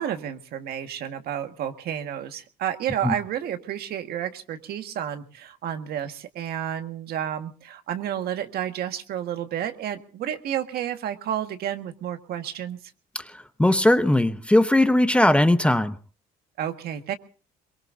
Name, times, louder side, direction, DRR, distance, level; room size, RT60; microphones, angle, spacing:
voice 1, 0.0-12.8 16.6-17.2, right 10 dB, 70° right, 7 dB, 1.6 m, -31 dB
voice 2, 13.6-16.0, left 1 dB, 5° left, 10 dB, 0.8 m, -19 dB
23.0 x 22.5 x 2.7 m, 0.37 s
cardioid pair, 110°, 17 cm